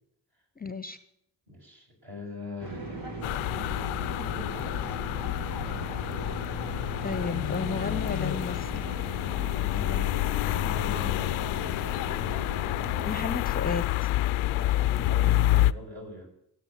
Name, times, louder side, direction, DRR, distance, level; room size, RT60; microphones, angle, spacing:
voice 1, 0.6-1.0 7.0-8.9 13.0-14.1, left 4 dB, 20° left, 13 dB, 0.8 m, -33 dB
voice 2, 1.5-3.0 3.5-5.3 9.7-11.4 14.5-16.3, left 2 dB, 45° right, -1 dB, 7.1 m, -42 dB
sound 1, 2.6-13.1, right 2 dB, 85° right, 2.5 m, -38 dB
sound 2, 3.2-15.7, left 16 dB, 75° left, 0.6 m, -28 dB
15.5 x 8.3 x 8.7 m, 0.77 s
hypercardioid pair, 40°, 50 cm